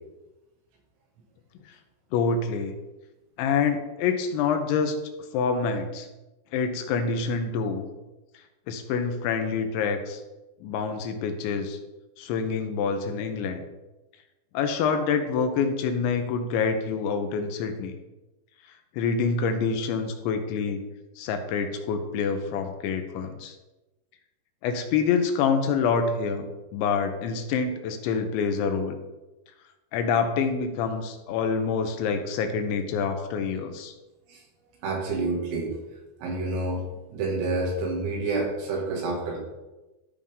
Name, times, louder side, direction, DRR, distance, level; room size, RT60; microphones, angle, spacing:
voice 1, 2.1-2.7 3.4-5.0 5.3-6.1 6.5-7.8 8.7-10.2 10.6-11.8 12.2-13.6 14.5-18.0 19.0-20.8 21.2-23.5 24.6-29.0 29.9-33.9, left 5 dB, 85° left, 6 dB, 3.2 m, -26 dB
voice 2, 34.8-35.8 36.2-36.8 37.1-39.4, right 3 dB, 70° right, -2 dB, 3.9 m, -28 dB
14.0 x 5.5 x 3.6 m, 1.1 s
omnidirectional pair, 5.3 m